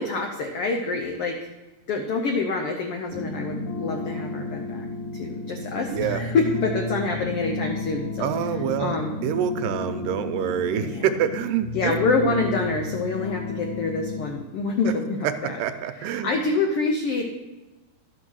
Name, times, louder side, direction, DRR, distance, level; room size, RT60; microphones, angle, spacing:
voice 1, 0.0-1.4 1.9-4.9 5.1-8.3 8.8-9.2 10.8-11.0 11.7-15.5 16.0-17.3, left 3 dB, 85° left, 3 dB, 1.2 m, -26 dB
sound 1, 3.1-14.3, left 2 dB, 45° left, 2.9 m, -32 dB
voice 2, 5.9-6.2 8.2-12.0 15.6-16.4, right 9 dB, 90° right, 9 dB, 2.3 m, -26 dB
12.5 x 6.0 x 6.2 m, 1.1 s
omnidirectional pair, 4.0 m